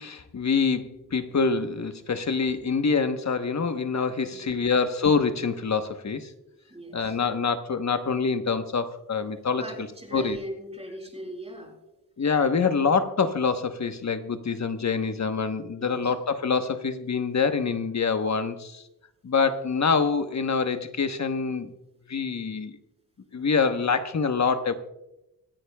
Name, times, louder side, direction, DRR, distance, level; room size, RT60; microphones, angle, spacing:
voice 1, 0.0-6.3 6.9-9.6 10.1-10.4 12.2-18.8 19.2-21.7 22.1-22.7 23.3-24.7, left 5 dB, 45° left, 8 dB, 1.1 m, -25 dB
voice 2, 4.2-4.5 6.7-7.2 9.6-11.7 15.8-16.1, equal, 15° right, -2 dB, 4.7 m, -39 dB
25.0 x 10.0 x 2.3 m, 0.89 s
cardioid pair, 80°, 37 cm